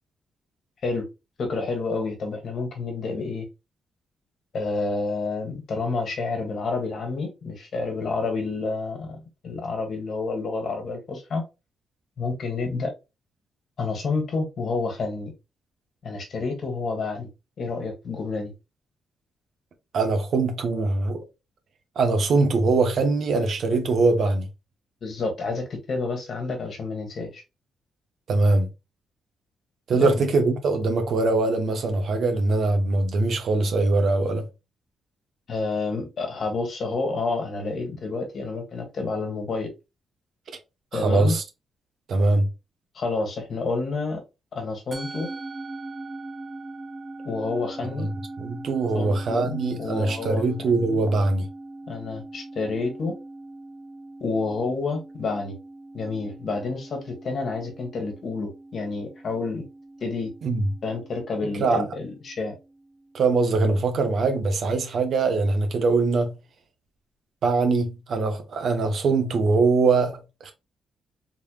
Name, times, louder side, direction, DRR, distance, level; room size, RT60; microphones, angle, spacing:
voice 1, 1.4-3.4 4.5-11.4 12.2-12.9 13.8-15.3 16.0-17.3 17.6-18.5 25.0-27.4 29.9-30.2 35.5-39.7 40.9-41.4 42.9-44.2 44.5-45.3 47.2-48.1 48.9-51.0 51.9-53.1 54.2-55.5 55.9-59.6 60.0-60.3 60.8-62.5, left 3 dB, 50° left, 1.6 m, -29 dB
voice 2, 19.9-21.2 21.9-24.5 28.3-28.7 29.9-34.5 40.9-41.4 42.1-42.5 48.0-48.1 48.4-51.5 60.4-60.7 61.5-61.8 63.1-66.3 67.4-70.5, right 3 dB, 55° right, 1.1 m, -22 dB
Musical instrument, 44.9-63.4, right 2 dB, 30° right, 1.0 m, -41 dB
3.9 x 3.4 x 2.3 m
cardioid pair, 135°, 0 cm